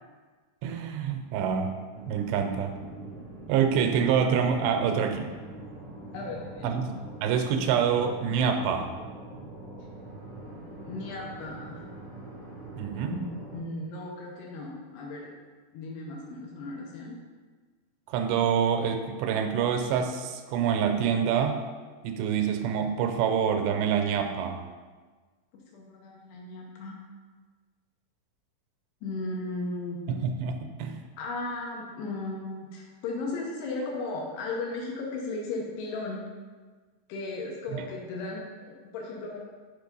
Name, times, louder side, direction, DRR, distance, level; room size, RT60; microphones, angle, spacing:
voice 1, 0.6-1.7 2.1-2.7 3.5-5.3 6.6-7.0 7.2-8.9 12.8-13.2 18.1-21.6 22.0-24.6 30.1-31.0, right 7 dB, 85° right, 5 dB, 2.8 m, -26 dB
sound 1, 1.9-13.6, right 2 dB, 20° right, 1.3 m, -43 dB
voice 2, 6.1-6.7 10.8-11.8 13.1-13.2 13.5-15.3 15.7-17.2 25.5-27.0 29.0-30.0 31.2-36.2 37.1-39.4, left 3 dB, 80° left, -2 dB, 3.0 m, -36 dB
6.7 x 5.2 x 5.3 m, 1.4 s
omnidirectional pair, 4.8 m